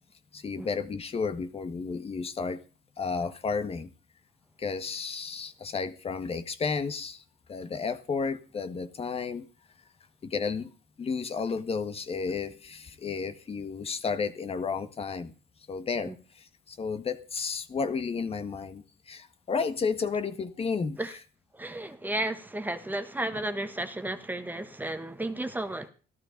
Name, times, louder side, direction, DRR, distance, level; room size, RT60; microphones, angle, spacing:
voice 1, 0.3-2.6 3.0-3.9 4.6-7.2 7.5-9.4 10.2-10.7 11.0-15.3 15.7-21.0, left 5 dB, 35° left, 1.7 m, -32 dB
voice 2, 21.5-25.9, right 1 dB, 10° right, 1.4 m, -33 dB
14.5 x 12.5 x 5.3 m
cardioid pair, 110°, 17 cm